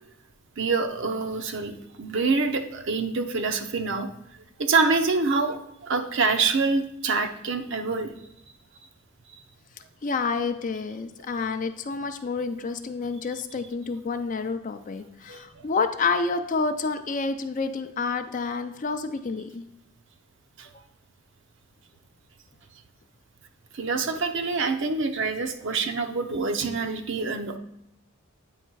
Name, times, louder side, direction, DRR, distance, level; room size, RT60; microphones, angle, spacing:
voice 1, 0.6-4.1 4.6-8.1 15.3-15.6 20.6-20.7 23.7-27.6, right 4 dB, 60° right, 6 dB, 0.7 m, -26 dB
voice 2, 10.0-19.7, left 4 dB, 35° left, 8 dB, 0.4 m, -29 dB
8.8 x 3.2 x 4.6 m, 0.82 s
head